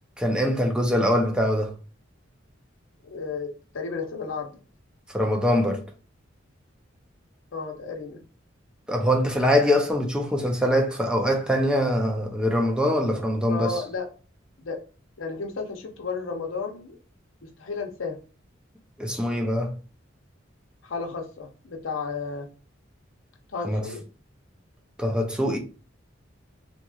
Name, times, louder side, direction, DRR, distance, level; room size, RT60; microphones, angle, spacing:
voice 1, 0.2-1.7 5.1-5.8 8.9-13.7 19.0-19.8 23.6-23.8 25.0-25.6, equal, 5° right, 0.4 m, -23 dB
voice 2, 3.0-4.5 7.5-8.2 13.5-14.1 14.6-14.8 15.2-17.0 17.4-18.2 20.8-22.5 23.5-24.0, left 4 dB, 85° left, 0.7 m, -33 dB
2.9 x 2.8 x 2.3 m
head